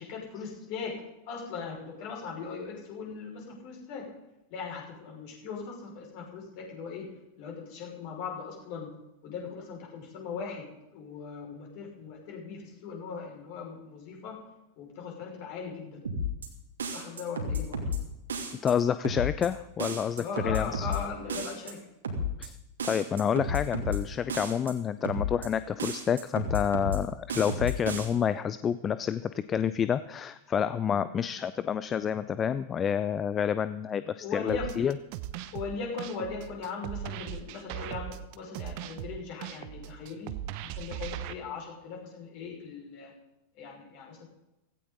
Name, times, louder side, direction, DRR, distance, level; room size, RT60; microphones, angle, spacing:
voice 1, 0.0-4.1 4.5-8.9 9.2-14.4 14.8-16.0 16.9-17.9 20.2-21.8 30.9-31.0 34.2-34.7 35.5-40.3 40.6-43.1 43.5-44.2, left 5 dB, 45° left, -1 dB, 5.9 m, -39 dB
sound 1, 16.0-16.5 16.8-18.0 18.3-18.7 19.0-19.5 19.8-21.0 21.3-21.7 22.0-22.5 22.8-24.0 24.3-24.7 25.0-25.5 25.8-27.0 27.3-28.0, left 1 dB, 70° right, 2.7 m, -32 dB
voice 2, 18.6-20.9 22.4-22.6 22.8-34.9 35.4-35.5, left 8 dB, 25° left, 15 dB, 0.5 m, -29 dB
sound 2, 34.5-41.3, right 12 dB, 45° right, 0.9 m, -39 dB
17.0 x 16.0 x 4.1 m, 0.91 s
figure-of-eight pair, 90°, 0 cm